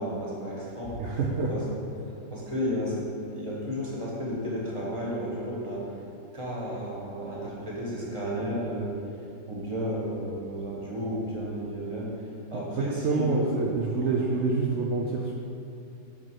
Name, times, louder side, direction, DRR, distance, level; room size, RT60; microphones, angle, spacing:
voice 1, 0.0-1.2 1.5-1.6 2.1-5.9 6.3-8.9 9.5-12.1 12.5-13.5 14.0-14.2, equal, 20° right, -6 dB, 1.3 m, -33 dB
voice 2, 1.0-1.5 12.5-15.3, right 4 dB, 80° right, -1 dB, 0.6 m, -27 dB
6.0 x 4.5 x 4.6 m, 2.6 s
omnidirectional pair, 1.8 m